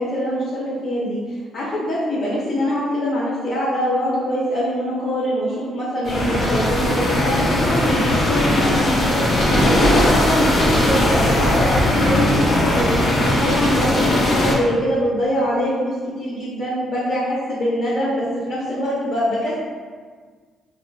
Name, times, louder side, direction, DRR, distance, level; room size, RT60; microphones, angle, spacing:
voice 1, 0.0-9.2 9.7-19.6, equal, 50° left, -8 dB, 0.8 m, -23 dB
sound 1, 6.0-14.5, left 1 dB, 70° left, 1.3 m, -18 dB
4.2 x 2.5 x 2.3 m, 1.5 s
cardioid pair, 90°, 0 cm